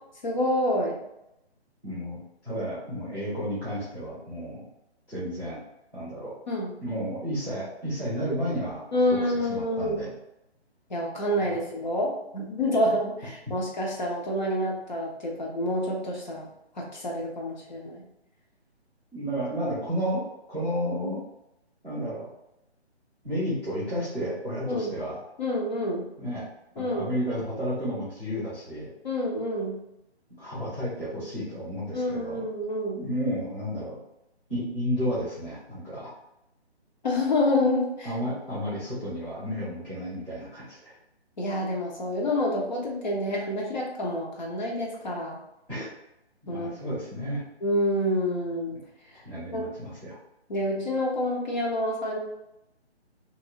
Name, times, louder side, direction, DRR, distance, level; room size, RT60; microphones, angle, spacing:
voice 1, 0.2-1.0 6.5-6.7 8.9-10.0 10.9-16.5 16.8-18.0 24.7-25.0 25.4-26.1 26.8-27.1 29.0-29.8 31.9-33.0 37.0-38.1 41.4-45.4 46.5-47.0 47.6-48.8 49.1-49.2 49.5-49.7 50.5-52.2, left 1 dB, 45° left, -2 dB, 0.8 m, -28 dB
voice 2, 1.8-2.2 2.4-4.6 5.1-5.6 5.9-6.3 6.8-8.8 9.1-10.1 11.5-11.6 19.1-21.2 21.8-22.3 23.2-25.2 26.2-26.4 26.8-28.9 30.4-32.4 32.9-34.0 34.5-36.1 38.0-40.9 45.7-45.9 46.4-47.4 49.2-50.2, equal, 5° left, -15 dB, 0.6 m, -32 dB
3.0 x 2.6 x 3.0 m, 0.86 s
figure-of-eight pair, 145°, 33 cm